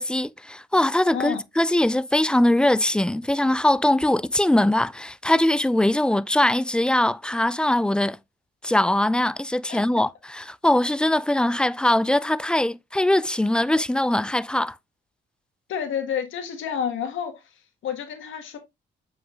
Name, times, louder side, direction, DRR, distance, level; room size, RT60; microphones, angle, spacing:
voice 1, 0.0-8.2 8.6-14.8, left 1 dB, 5° left, 0.3 m, -21 dB
voice 2, 15.7-17.4 17.8-18.6, left 8 dB, 80° left, 1.7 m, -29 dB
7.3 x 5.5 x 2.5 m
cardioid pair, 90°, 20 cm